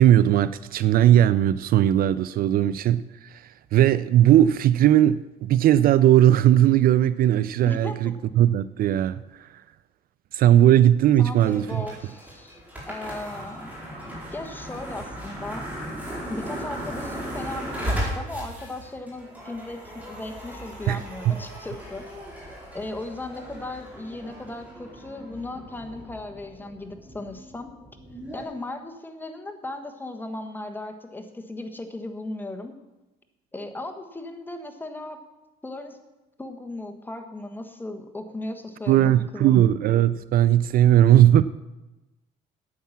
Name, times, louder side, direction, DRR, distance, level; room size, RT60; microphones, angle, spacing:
voice 1, 0.0-9.5 10.3-11.8 20.9-21.4 38.9-41.4, right 12 dB, 60° right, 16 dB, 0.4 m, -18 dB
voice 2, 7.7-8.0 11.2-12.6 12.9-13.7 14.3-15.6 16.3-22.0 22.7-27.7 28.3-32.7 33.5-35.2 35.6-36.0 36.4-39.6, left 2 dB, 10° left, 5 dB, 1.4 m, -36 dB
sound 1, 11.4-28.4, equal, 10° right, 4.3 m, -37 dB
9.5 x 8.5 x 7.3 m, 1.0 s
cardioid pair, 110°, 17 cm